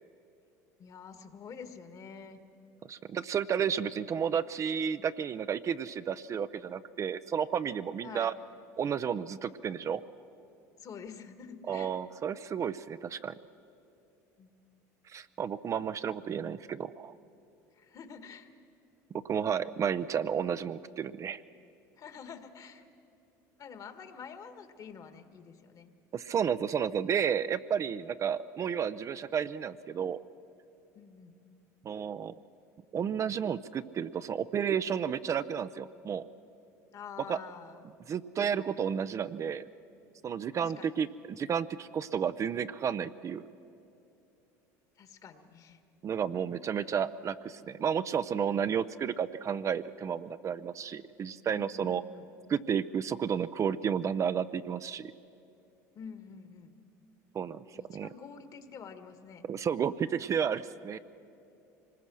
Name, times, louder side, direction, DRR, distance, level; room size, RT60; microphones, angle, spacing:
voice 1, 0.8-2.4 8.0-8.3 10.8-11.9 14.4-14.6 17.7-18.5 22.0-22.9 23.6-26.0 30.9-31.3 36.9-37.8 40.6-41.0 45.0-45.8 51.5-52.3 55.9-56.8 57.7-59.5 60.9-61.0, left 6 dB, 45° left, 9 dB, 1.6 m, -47 dB
voice 2, 2.9-8.4 8.8-10.0 11.7-13.3 15.1-17.1 19.2-21.4 26.1-30.2 31.8-32.3 32.9-36.3 37.3-37.4 38.1-39.6 40.2-43.5 46.0-52.0 52.5-55.1 57.3-58.1 59.5-61.0, right 7 dB, 35° right, 13 dB, 0.5 m, -32 dB
25.0 x 20.0 x 6.2 m, 2.7 s
supercardioid pair, 90°, 9 cm